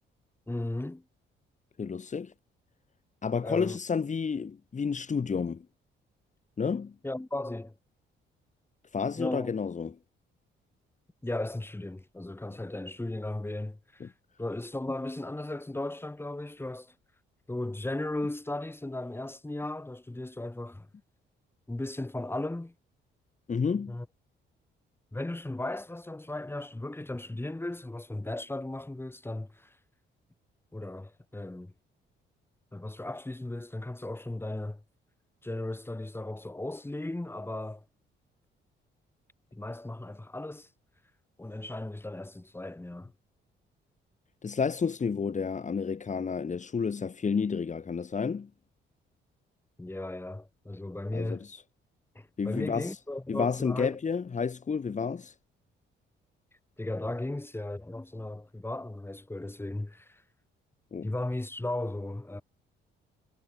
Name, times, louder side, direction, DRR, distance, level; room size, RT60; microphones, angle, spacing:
voice 1, 0.5-1.0 3.4-3.8 7.0-7.7 9.2-9.6 11.2-14.1 14.4-16.9 17.5-20.9 21.7-22.7 23.9-24.0 25.1-29.7 30.7-31.7 32.7-34.8 35.4-37.8 39.5-40.7 41.4-43.1 49.8-51.4 52.1-54.0 56.8-60.2 61.0-62.4, left 2 dB, 10° left, 6.7 m, -36 dB
voice 2, 1.8-2.3 3.2-5.7 6.6-7.0 8.9-10.0 14.0-14.1 23.5-24.0 44.4-48.5 51.1-51.6 52.4-53.0 53.3-55.4 60.9-61.1, left 5 dB, 40° left, 3.5 m, -30 dB
cardioid pair, 90°, 20 cm